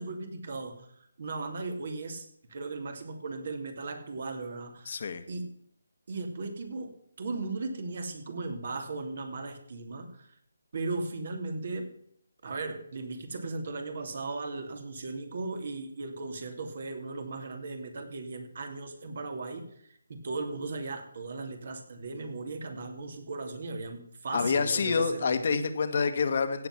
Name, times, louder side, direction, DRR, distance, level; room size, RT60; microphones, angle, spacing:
voice 1, 0.0-5.0 5.3-5.5 6.1-10.3 10.7-11.9 12.4-25.4, right 3 dB, 55° right, 6 dB, 2.7 m, -37 dB
voice 2, 4.8-5.2 24.3-26.7, left 5 dB, 50° left, 9 dB, 1.7 m, -27 dB
16.0 x 7.8 x 6.0 m, 0.69 s
figure-of-eight pair, 155°, 0 cm